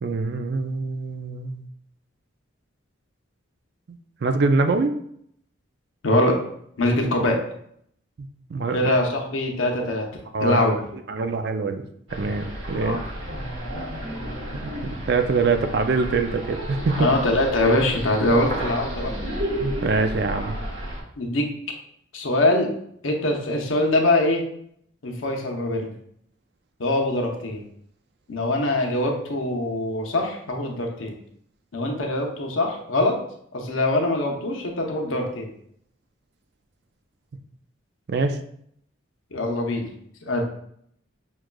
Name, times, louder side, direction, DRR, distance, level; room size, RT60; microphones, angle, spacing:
voice 1, 0.0-1.6 3.9-4.9 8.2-8.8 10.3-10.6 11.1-11.8 12.1-13.0 14.6-17.1 19.6-20.6 38.1-38.4, right 4 dB, 55° right, 7 dB, 0.3 m, -24 dB
voice 2, 6.0-6.3 6.8-7.4 8.7-10.1 10.4-10.7 12.8-13.0 17.0-19.2 21.2-21.5 22.1-22.7 23.0-24.4 25.0-25.9 26.8-27.6 28.3-31.1 31.7-33.2 33.5-35.5 39.3-39.9 40.3-40.4, left 1 dB, 80° left, 1 dB, 0.7 m, -23 dB
sound 1, 12.1-21.0, right 1 dB, 75° right, 1.2 m, -32 dB
6.2 x 2.3 x 2.2 m, 0.68 s
head